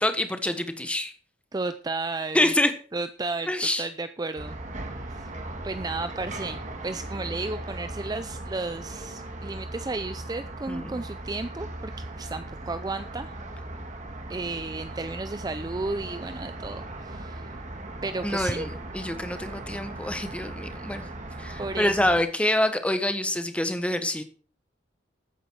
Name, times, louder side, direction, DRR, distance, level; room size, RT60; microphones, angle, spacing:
voice 1, 0.0-1.1 2.3-2.7 3.5-3.8 10.7-11.0 18.2-21.0 21.4-24.2, left 1 dB, 5° left, 8 dB, 1.3 m, -26 dB
voice 2, 1.5-2.5 2.9-3.5 3.8-4.6 5.1-5.3 5.6-13.3 14.3-17.5 18.0-18.7 21.6-22.1, right 3 dB, 20° right, 11 dB, 0.4 m, -33 dB
sound 1, 4.4-22.2, right 2 dB, 40° right, 1.7 m, -38 dB
14.0 x 9.2 x 4.7 m, 0.42 s
head